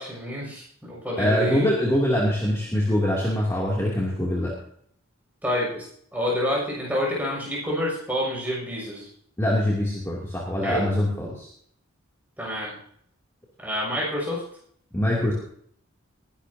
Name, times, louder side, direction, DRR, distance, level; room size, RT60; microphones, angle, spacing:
voice 1, 0.0-1.7 5.4-5.9 6.1-9.1 10.6-10.9 12.4-12.8 13.6-14.4, equal, 5° right, -3 dB, 6.7 m, -28 dB
voice 2, 1.2-4.5 9.4-11.5 14.9-15.3, equal, 15° left, -5 dB, 2.8 m, -23 dB
21.0 x 11.5 x 2.8 m, 0.63 s
head